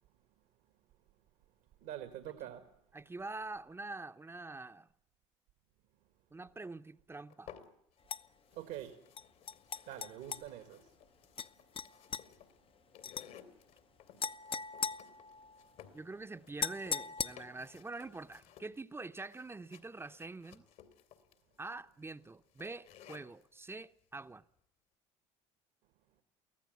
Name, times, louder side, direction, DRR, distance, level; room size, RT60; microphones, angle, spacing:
voice 1, 1.8-2.7 8.5-9.0 9.9-10.8, right 11 dB, 75° right, 1.8 m, -45 dB
voice 2, 2.9-4.9 6.3-7.5 15.9-20.6 21.6-24.4, right 3 dB, 15° right, 0.9 m, -45 dB
sound 1, 7.3-8.1 8.5-23.5, left 9 dB, 65° left, 2.5 m, -58 dB
sound 2, 8.1-8.2 9.2-10.4 11.4-11.5 11.8-12.2 13.0-13.3 14.2-15.7 16.6-17.7, left 6 dB, 40° left, 0.8 m, -39 dB
23.5 x 16.0 x 9.2 m
hypercardioid pair, 70°, 15 cm